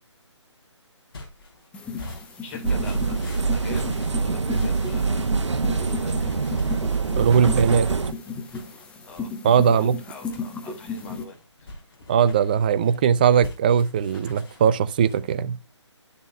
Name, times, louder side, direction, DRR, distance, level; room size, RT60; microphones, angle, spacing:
sound 1, 1.1-15.4, left 2 dB, 50° left, 3.5 m, -45 dB
sound 2, 1.7-11.2, left 4 dB, 5° left, 0.9 m, -35 dB
voice 1, 2.4-5.3 5.7-6.6 7.2-7.7 9.0-9.3 9.7-11.4, left 4 dB, 30° left, 3.3 m, -43 dB
tram crosses the street (new surface car), 2.6-8.1, right 4 dB, 70° right, 1.1 m, -25 dB
voice 2, 7.2-7.9 9.4-9.9 12.1-15.6, right 7 dB, 20° right, 0.4 m, -19 dB
12.5 x 6.8 x 2.2 m
figure-of-eight pair, 150°, 16 cm